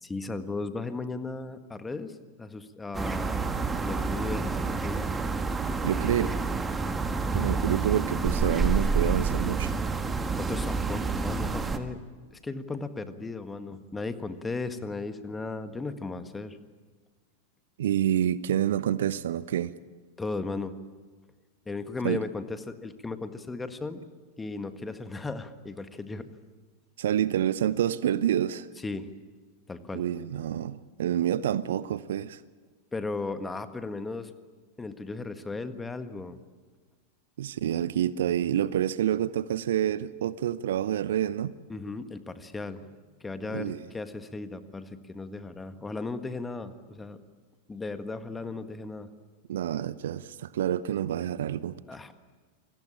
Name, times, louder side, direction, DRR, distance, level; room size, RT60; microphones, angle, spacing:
voice 1, 0.0-3.5 3.8-5.1 10.4-12.0 12.3-16.6 20.2-20.8 21.6-24.0 24.4-26.3 28.8-29.1 29.7-30.0 32.9-34.3 34.8-36.4 41.7-42.9 43.2-47.2 47.7-49.1 51.9-52.1, left 3 dB, 10° left, 1.6 m, -36 dB
sound 1, 2.9-11.8, right 4 dB, 15° right, 1.8 m, -28 dB
voice 2, 5.8-6.3 7.3-9.7 17.8-19.7 22.0-22.2 27.0-28.7 29.9-32.4 37.4-41.5 43.5-43.9 49.5-51.8, right 11 dB, 60° right, 0.7 m, -28 dB
28.0 x 21.5 x 8.8 m
figure-of-eight pair, 90°, 0 cm